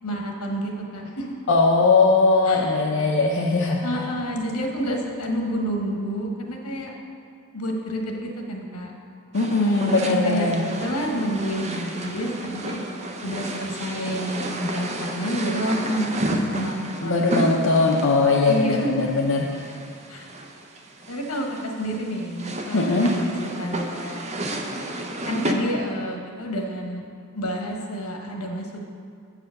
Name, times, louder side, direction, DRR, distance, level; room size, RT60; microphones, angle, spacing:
voice 1, 0.0-1.4 2.4-2.8 3.8-6.9 7.5-8.9 9.8-12.8 13.2-17.3 18.5-19.0 20.1-20.3 21.1-24.4 25.3-27.0 27.3-28.9, equal, 75° left, 1 dB, 1.2 m, -29 dB
voice 2, 1.5-4.1 6.0-6.1 9.3-10.6 17.0-19.5 22.7-23.1, left 3 dB, 60° left, -2 dB, 0.6 m, -20 dB
sound 1, 9.3-25.5, right 1 dB, 30° right, 0.6 m, -32 dB
8.4 x 4.9 x 6.4 m, 2.4 s
head